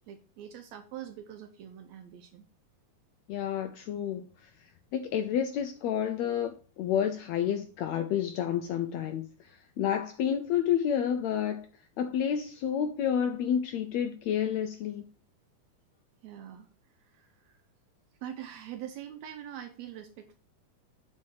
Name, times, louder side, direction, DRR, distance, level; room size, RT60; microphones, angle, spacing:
voice 1, 0.1-2.5 16.2-16.7 17.0-17.6 18.2-20.4, right 10 dB, 80° right, 1.7 m, -44 dB
voice 2, 3.3-4.5 4.9-11.7 12.0-15.0, left 9 dB, 80° left, 1.6 m, -30 dB
7.5 x 4.4 x 4.6 m
omnidirectional pair, 3.6 m